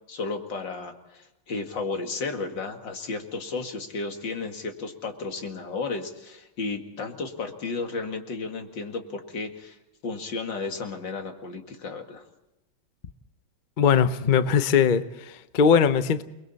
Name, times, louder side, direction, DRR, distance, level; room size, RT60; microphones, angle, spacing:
voice 1, 0.1-9.8 10.0-12.2, left 3 dB, 65° left, 2.7 m, -33 dB
voice 2, 13.8-16.2, left 7 dB, 90° left, 0.4 m, -20 dB
29.5 x 21.5 x 4.2 m
omnidirectional pair, 2.2 m